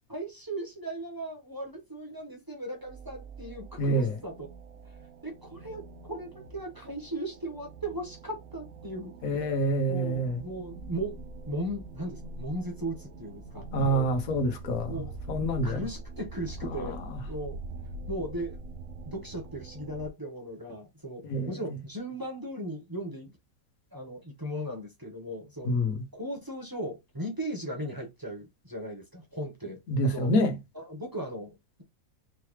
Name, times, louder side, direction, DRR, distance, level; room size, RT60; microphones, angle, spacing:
voice 1, 0.1-4.5 5.2-9.5 9.9-14.1 14.8-17.0 17.3-17.6 18.1-18.6 19.0-23.4 23.9-25.7 26.1-30.3 30.7-31.8, right 1 dB, 15° right, 1.2 m, -37 dB
sound 1, 2.7-20.1, right 2 dB, 80° right, 1.2 m, -43 dB
voice 2, 3.8-4.1 9.2-10.4 13.7-15.8 16.8-16.9 21.3-21.5 25.6-26.0 29.9-30.6, equal, 75° left, 1.3 m, -27 dB
4.5 x 3.1 x 3.1 m
omnidirectional pair, 1.5 m